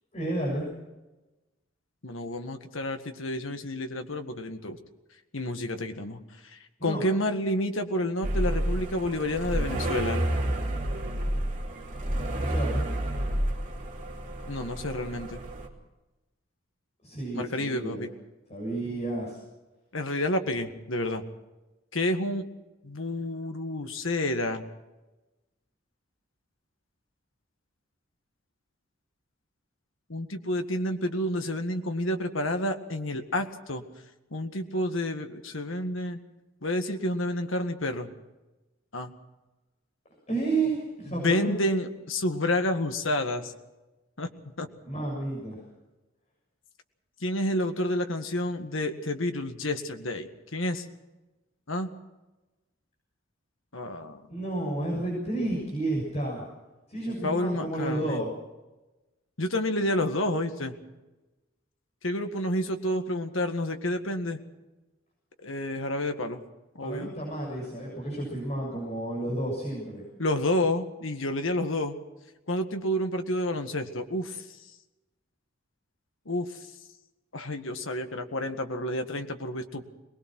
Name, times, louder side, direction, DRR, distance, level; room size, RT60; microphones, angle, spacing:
voice 1, 0.1-0.7 6.8-7.0 12.4-12.9 17.0-18.0 18.5-19.4 40.3-41.5 44.9-45.6 54.3-56.4 56.9-58.3 66.8-70.0, right 2 dB, 30° left, -4 dB, 7.2 m, -31 dB
voice 2, 2.0-4.8 5.3-10.2 14.5-15.4 17.3-18.1 19.9-21.2 21.9-22.5 22.8-24.6 30.1-33.8 34.3-36.2 36.6-38.1 38.9-39.1 41.0-43.5 44.2-44.7 47.2-50.9 51.7-51.9 53.7-54.2 57.2-58.2 59.4-60.8 62.0-64.4 65.4-66.4 66.8-67.1 70.2-72.0 72.5-74.6 76.3-76.7 77.3-79.8, left 1 dB, 75° left, 6 dB, 1.9 m, -30 dB
sound 1, 8.2-15.7, right 1 dB, 40° right, 3.0 m, -30 dB
22.5 x 20.5 x 6.2 m, 1.1 s
head